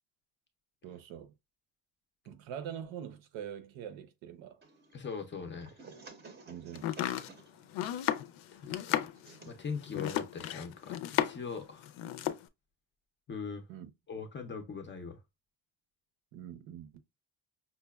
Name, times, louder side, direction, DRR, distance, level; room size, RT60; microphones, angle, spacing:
voice 1, 0.8-1.3 2.3-4.6 6.4-7.0 13.7-13.9 16.3-17.0, right 9 dB, 80° right, 0.8 m, -44 dB
sound 1, 4.6-11.3, right 4 dB, 25° right, 0.6 m, -56 dB
voice 2, 4.9-5.8 8.5-9.0 9.5-11.9 13.3-13.7 14.1-15.2, left 5 dB, 25° left, 0.4 m, -41 dB
Domestic sounds home sounds, 6.7-11.5 11.8-12.4, left 12 dB, 90° left, 0.5 m, -34 dB
5.5 x 2.2 x 2.2 m
cardioid pair, 175°, 45 cm